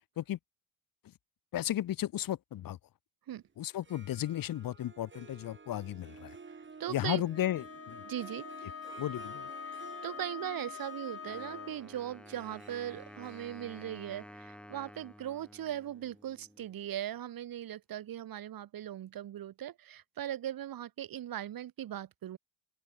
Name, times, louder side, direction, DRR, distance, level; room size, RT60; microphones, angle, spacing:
voice 1, 1.5-2.8 3.6-6.3 6.9-8.0 9.0-9.5, left 12 dB, 55° left, 1.4 m, -34 dB
Harp, 3.7-16.6, right 5 dB, 25° right, 5.9 m, -53 dB
voice 2, 6.5-7.2 8.0-8.5 9.6-22.4, right 11 dB, 55° right, 2.3 m, -39 dB
Wind instrument woodwind instrument, 7.3-11.9, left 7 dB, 35° left, 2.0 m, -44 dB
Wind instrument woodwind instrument 2, 11.2-16.9, equal, 5° left, 2.5 m, -52 dB
open air
supercardioid pair, 90°, 42 cm